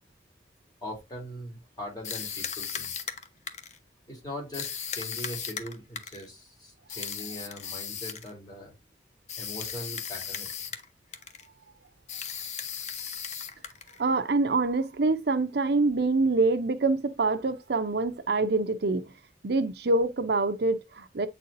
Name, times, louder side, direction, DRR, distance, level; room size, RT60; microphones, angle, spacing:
voice 1, 0.8-2.9 4.1-8.7 9.4-10.5, equal, 20° left, 3.8 m, -41 dB
sound 1, 2.0-3.8 4.5-6.3 6.9-8.3 9.3-10.9 11.1-11.5 12.1-14.0, left 7 dB, 40° left, 0.9 m, -36 dB
voice 2, 14.0-19.1 19.4-21.3, right 3 dB, 60° right, 0.7 m, -25 dB
8.5 x 4.4 x 2.6 m
head